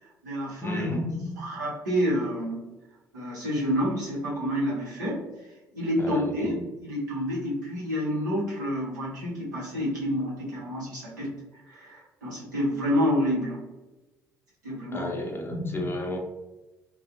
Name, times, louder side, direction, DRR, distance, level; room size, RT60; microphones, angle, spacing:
voice 1, 0.0-2.6 3.1-5.2 5.7-13.6 14.6-15.1 15.6-15.9, equal, 80° right, -6 dB, 0.9 m, -29 dB
voice 2, 0.6-1.1 6.0-6.5 14.9-16.2, left 2 dB, 25° left, 1 dB, 0.6 m, -33 dB
2.5 x 2.3 x 2.4 m, 1.1 s
figure-of-eight pair, 50°, 10 cm